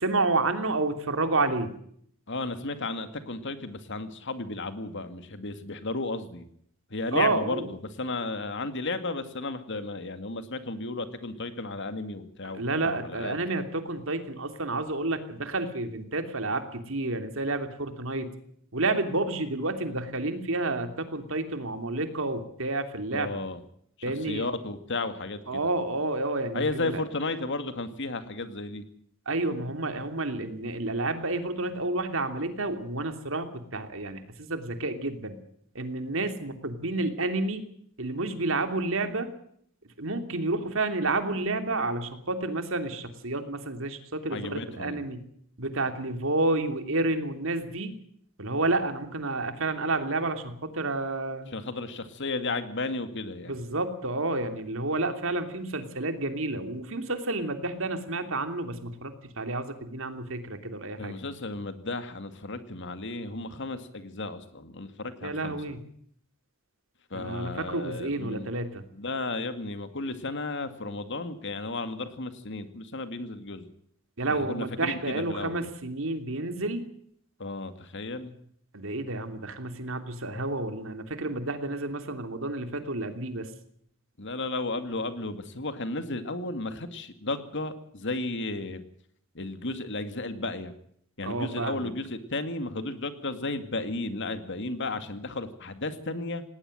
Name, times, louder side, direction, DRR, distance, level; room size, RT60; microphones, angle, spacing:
voice 1, 0.0-1.7 7.1-7.7 12.4-18.3 18.7-23.4 24.0-24.5 25.5-27.0 29.3-35.4 35.7-37.7 38.0-39.3 40.0-45.2 45.6-47.9 48.4-51.5 53.5-61.2 65.2-65.8 67.1-68.8 74.2-76.8 78.7-83.5 91.2-91.9, right 2 dB, 65° right, 8 dB, 3.0 m, -30 dB
voice 2, 2.3-6.5 6.9-13.4 23.1-23.6 24.0-25.7 26.5-28.8 44.3-45.0 51.5-53.5 61.0-65.8 67.1-68.5 68.9-73.7 74.3-75.6 77.4-78.4 84.2-88.8 89.3-90.7 91.2-96.4, left 2 dB, 55° left, 10 dB, 2.3 m, -34 dB
18.5 x 18.5 x 7.9 m, 0.66 s
head